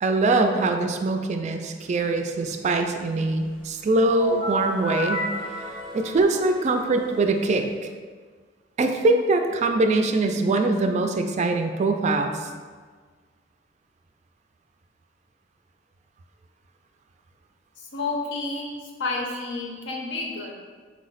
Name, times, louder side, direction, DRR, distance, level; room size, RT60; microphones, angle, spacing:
voice 1, 0.0-5.3 5.6-5.7 5.9-7.6 8.8-12.5, right 2 dB, 40° right, 5 dB, 0.3 m, -23 dB
sound 1, 4.2-7.8, left 1 dB, 5° left, 0.6 m, -33 dB
voice 2, 17.8-20.5, left 3 dB, 70° left, 0 dB, 0.6 m, -30 dB
4.6 x 2.0 x 3.9 m, 1.6 s
head